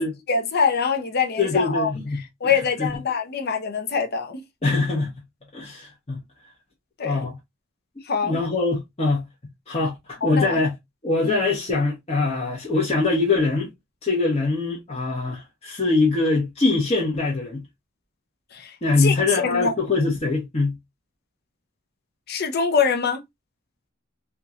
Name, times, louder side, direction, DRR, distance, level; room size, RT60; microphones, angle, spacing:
voice 1, 0.3-1.9 2.4-4.4 7.0-7.3 8.0-8.4 10.3-10.6 11.2-11.4 18.5-19.8 22.3-23.2, left 5 dB, 50° left, 0.7 m, -24 dB
voice 2, 1.4-2.9 4.6-5.1 5.5-6.2 7.0-7.3 8.2-9.2 9.7-10.7 11.0-13.7 14.0-17.6 18.8-20.8, left 3 dB, 30° left, 1.0 m, -23 dB
3.6 x 2.4 x 2.7 m
head